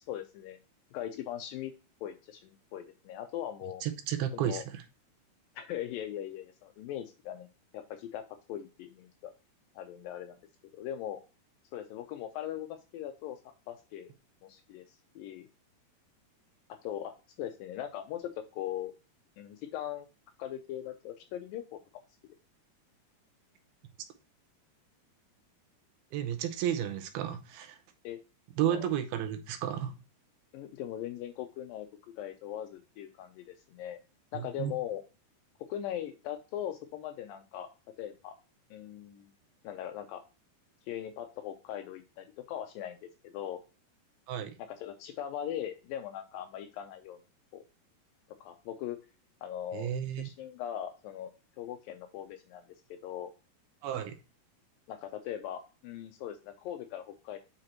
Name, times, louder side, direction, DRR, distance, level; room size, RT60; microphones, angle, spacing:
voice 1, 0.1-0.6 0.9-1.7 2.0-3.8 4.3-4.6 5.6-7.5 7.7-8.2 8.5-9.3 9.8-10.4 10.7-11.2 11.7-13.4 13.7-14.1 14.4-15.5 16.8-18.9 19.4-20.1 20.4-21.8 28.0-28.2 28.7-28.9 30.5-31.9 32.2-34.0 34.3-35.0 35.7-37.7 38.0-38.3 38.7-39.3 39.6-40.2 40.9-43.6 44.8-47.2 47.5-47.6 48.4-49.0 49.4-51.3 51.6-52.6 52.9-53.3 54.9-57.4, left 11 dB, 85° left, 7 dB, 2.1 m, -40 dB
voice 2, 3.8-4.8 26.1-27.8 28.6-29.9 34.3-34.7 44.3-44.6 49.7-50.3 53.8-54.2, right 10 dB, 80° right, 9 dB, 2.7 m, -32 dB
7.7 x 5.2 x 2.9 m, 0.31 s
omnidirectional pair, 4.5 m